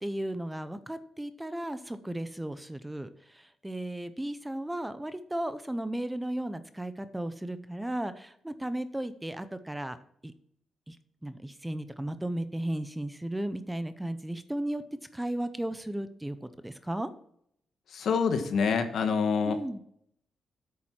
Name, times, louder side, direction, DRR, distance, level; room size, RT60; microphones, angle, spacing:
voice 1, 0.0-10.0 10.2-10.3 10.9-11.0 11.2-14.8 15.1-16.4 16.6-17.1 19.4-19.8, right 1 dB, 10° right, 11 dB, 0.7 m, -35 dB
voice 2, 17.9-19.6, left 5 dB, 70° left, 8 dB, 1.3 m, -26 dB
8.7 x 7.3 x 5.9 m, 0.69 s
cardioid pair, 115°, 0 cm